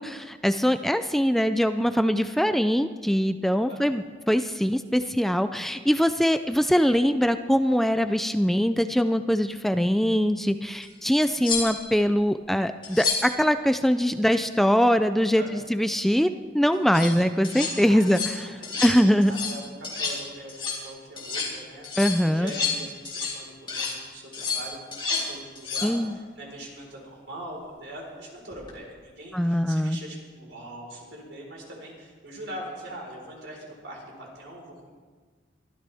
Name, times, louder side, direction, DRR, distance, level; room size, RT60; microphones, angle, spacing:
voice 1, 0.0-16.3 16.5-18.2 18.8-19.3 22.0-22.5 25.8-26.1 29.3-30.0, equal, ahead, 9 dB, 0.4 m, -22 dB
voice 2, 3.7-4.0 15.4-15.7 16.9-17.1 17.7-18.0 18.3-19.6 20.0-34.9, right 1 dB, 80° right, -2 dB, 4.4 m, -42 dB
sound 1, 10.8-10.9 11.4-12.0 12.8-13.4 16.7-17.1 17.4-17.7 18.0-18.4 18.6-19.0 19.2-19.6 19.8-20.2 20.5-20.8 21.2-21.5 21.8-23.4 23.7-24.0 24.3-25.3 25.5-25.9 28.5-28.7, left 5 dB, 30° left, 3.1 m, -30 dB
23.0 x 13.5 x 3.5 m, 1.5 s
head